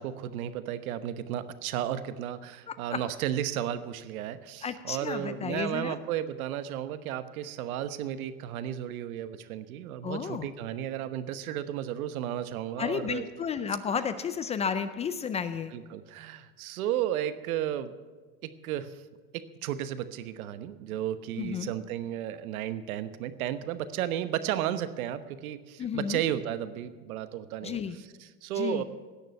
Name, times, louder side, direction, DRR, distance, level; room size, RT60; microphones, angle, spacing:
voice 1, 0.0-13.3 15.7-17.9 18.4-19.0 19.3-28.8, right 11 dB, 75° right, 12 dB, 1.2 m, -33 dB
voice 2, 2.7-3.0 4.6-5.9 10.0-10.5 12.8-15.7 21.4-21.7 25.8-26.2 27.6-27.9 28.6-28.8, left 7 dB, 15° left, 12 dB, 0.4 m, -32 dB
17.5 x 6.7 x 9.4 m, 1.4 s
supercardioid pair, 130°, 42 cm